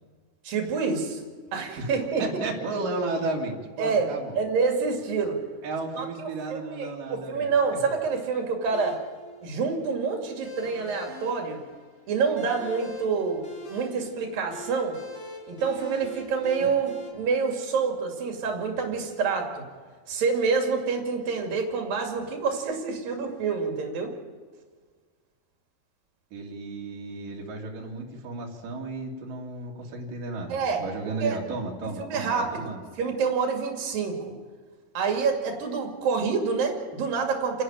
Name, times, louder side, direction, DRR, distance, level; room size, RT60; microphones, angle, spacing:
voice 1, 0.4-1.2 1.5-2.2 3.8-4.1 4.3-5.4 6.0-9.0 9.4-11.6 12.1-15.0 15.5-19.6 20.1-24.1 30.5-30.8 31.2-31.4 32.0-32.7 33.0-34.3 34.9-37.6, right 5 dB, 90° right, 2 dB, 4.2 m, -27 dB
voice 2, 2.2-4.4 5.6-7.5 16.6-16.7 26.3-32.8, right 3 dB, 70° right, -1 dB, 4.0 m, -33 dB
sound 1, 8.7-17.1, left 2 dB, 40° left, 4.7 m, -43 dB
30.0 x 11.5 x 8.9 m, 1.5 s
omnidirectional pair, 3.9 m